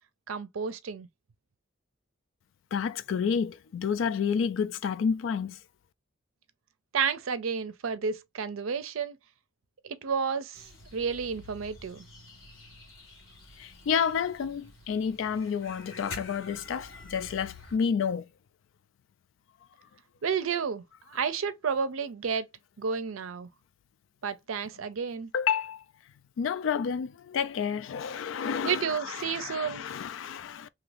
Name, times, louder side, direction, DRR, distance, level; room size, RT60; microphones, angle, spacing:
voice 1, 0.3-1.1 6.9-9.2 9.8-12.0 20.2-22.5 22.8-23.5 24.2-25.3 28.6-29.8, right 6 dB, 90° right, 0.5 m, -31 dB
voice 2, 2.7-5.6 13.6-18.2 25.3-25.8 26.4-30.7, left 7 dB, 70° left, 0.3 m, -30 dB
sound 1, 10.5-17.8, left 3 dB, 85° left, 1.1 m, -48 dB
2.8 x 2.4 x 3.2 m
head